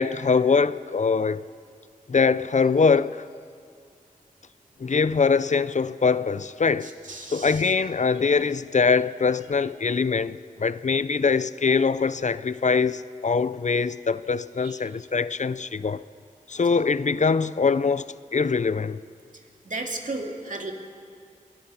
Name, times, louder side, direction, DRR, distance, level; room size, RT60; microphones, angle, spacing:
voice 1, 0.0-1.4 2.1-3.2 4.8-6.9 7.3-16.0 16.5-19.0, left 5 dB, 55° left, 0.5 m, -23 dB
voice 2, 6.8-7.6 14.6-14.7 19.6-20.7, right 2 dB, 60° right, 2.4 m, -34 dB
23.0 x 20.0 x 5.7 m
wide cardioid pair, 50°, 15 cm